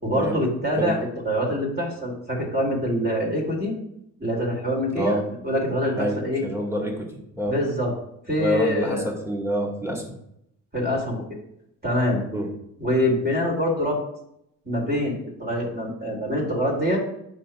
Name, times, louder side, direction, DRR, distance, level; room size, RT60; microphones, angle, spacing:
voice 1, 0.0-3.8 4.2-5.2 5.4-6.4 7.5-7.9 8.3-9.1 10.7-11.2 11.8-12.2 12.8-14.0 14.6-17.0, equal, 30° right, -2 dB, 2.4 m, -25 dB
voice 2, 5.0-5.3 5.9-7.6 8.4-10.2 12.3-12.5, equal, 10° right, -1 dB, 1.7 m, -27 dB
8.8 x 5.7 x 2.3 m, 0.76 s
cardioid pair, 90°, 30 cm